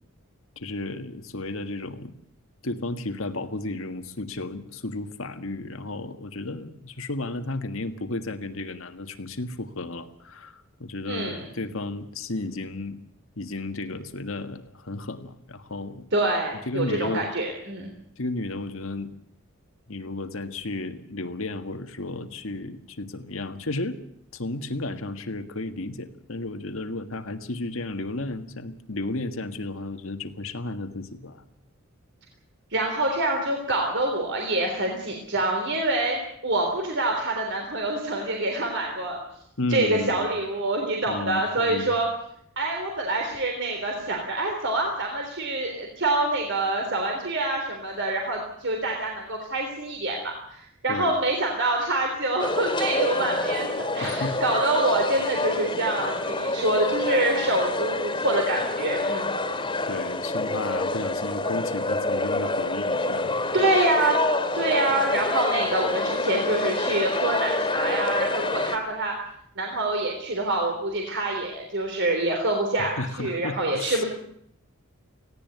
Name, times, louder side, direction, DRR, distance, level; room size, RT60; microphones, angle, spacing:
voice 1, 0.6-2.1 2.6-13.0 13.4-16.1 16.7-17.3 18.2-19.1 19.9-24.0 24.3-31.4 39.6-40.3 41.1-42.0 50.9-51.1 54.0-54.4 59.9-63.4 72.9-74.0, left 2 dB, 70° left, 8 dB, 1.7 m, -33 dB
voice 2, 11.1-11.4 16.1-17.9 32.7-39.2 39.7-42.1 42.6-59.4 63.5-64.2 64.5-69.2 69.6-74.0, right 2 dB, 55° right, 2 dB, 3.6 m, -26 dB
sound 1, 52.4-68.8, left 2 dB, 20° left, 2.5 m, -27 dB
18.5 x 17.0 x 9.4 m, 0.71 s
head